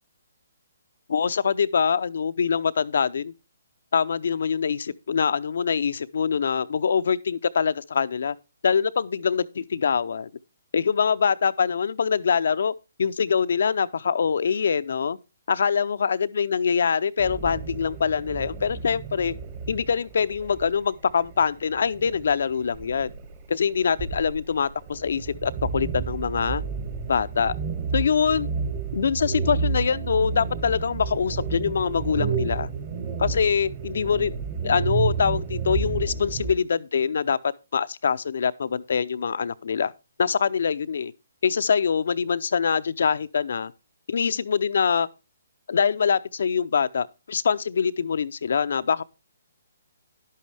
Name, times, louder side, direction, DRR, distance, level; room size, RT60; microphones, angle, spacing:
voice 1, 1.1-3.3 3.9-8.4 8.6-10.3 10.7-12.7 13.0-15.2 15.5-19.3 19.7-23.1 23.5-26.6 27.1-27.5 27.9-28.5 28.9-32.7 33.2-34.3 34.6-39.9 40.2-41.1 41.4-43.7 44.1-45.1 45.7-49.0, left 6 dB, 65° left, 0.6 m, -24 dB
sound 1, 17.2-36.5, right 5 dB, 40° right, 2.2 m, -31 dB
11.0 x 8.3 x 3.4 m
hypercardioid pair, 155°, 0 cm